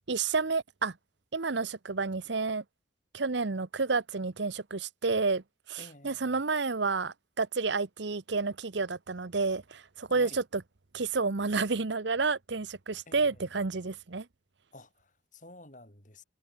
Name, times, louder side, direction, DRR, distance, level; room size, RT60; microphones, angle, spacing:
voice 1, 0.1-0.9 1.3-2.6 3.1-5.4 5.7-10.6 10.9-14.3, right 4 dB, 65° right, 0.9 m, -30 dB
voice 2, 5.8-6.4 10.1-10.4 13.1-13.4 14.7-16.2, left 2 dB, 40° left, 6.1 m, -52 dB
head